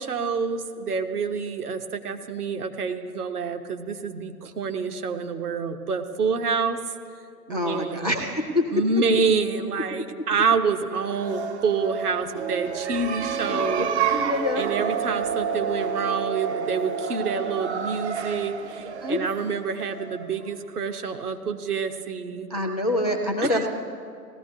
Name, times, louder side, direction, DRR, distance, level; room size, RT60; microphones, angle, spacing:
voice 1, 0.0-6.8 7.5-8.1 8.7-13.9 14.6-22.5 23.4-23.6, right 5 dB, 65° right, 6 dB, 1.0 m, -27 dB
voice 2, 7.5-8.6 13.2-13.3 13.6-14.7 18.8-19.2 22.5-23.7, left 1 dB, 30° left, 2 dB, 0.3 m, -26 dB
sound 1, 11.0-20.5, right 7 dB, 45° right, 0.5 m, -29 dB
18.5 x 14.0 x 2.7 m, 2.3 s
figure-of-eight pair, 120°, 49 cm